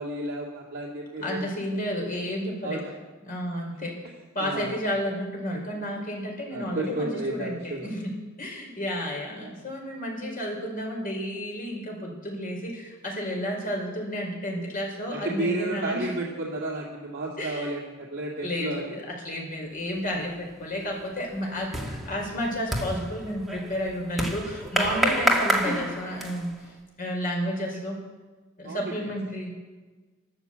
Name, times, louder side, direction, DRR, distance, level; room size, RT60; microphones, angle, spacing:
voice 1, 0.0-1.5 2.6-3.0 4.4-4.7 6.5-7.9 9.4-9.5 15.1-18.9 28.6-29.1, right 2 dB, 50° right, -4 dB, 2.4 m, -32 dB
voice 2, 1.2-2.8 3.2-4.1 4.3-16.1 17.4-17.8 18.4-28.0 28.6-29.7, equal, 45° left, 0 dB, 4.9 m, -32 dB
sound 1, 20.1-20.5 20.8-26.6, right 1 dB, ahead, 2.0 m, -28 dB
13.0 x 13.0 x 8.1 m, 1.3 s
head